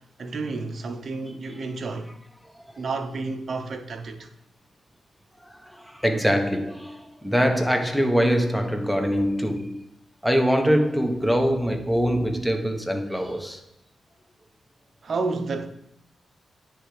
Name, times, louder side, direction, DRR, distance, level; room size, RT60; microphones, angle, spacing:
voice 1, 0.2-2.1 2.8-4.3 15.0-15.7, right 3 dB, 60° right, 0.6 m, -30 dB
voice 2, 5.4-9.8 10.2-13.6, equal, ahead, 1.0 m, -23 dB
9.8 x 3.4 x 3.2 m
cardioid pair, 65°, 0 cm